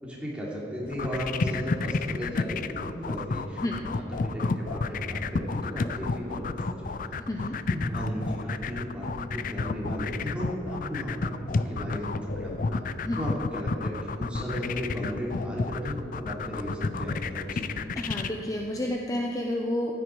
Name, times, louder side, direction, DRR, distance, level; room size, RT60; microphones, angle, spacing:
voice 1, 0.0-7.2 7.7-12.8 13.2-17.7, equal, 5° right, -5 dB, 3.0 m, -35 dB
sound 1, 0.9-18.3, left 4 dB, 50° left, 0.5 m, -30 dB
voice 2, 17.9-19.9, left 1 dB, 20° left, 1 dB, 0.7 m, -30 dB
15.5 x 9.7 x 4.8 m, 2.9 s
head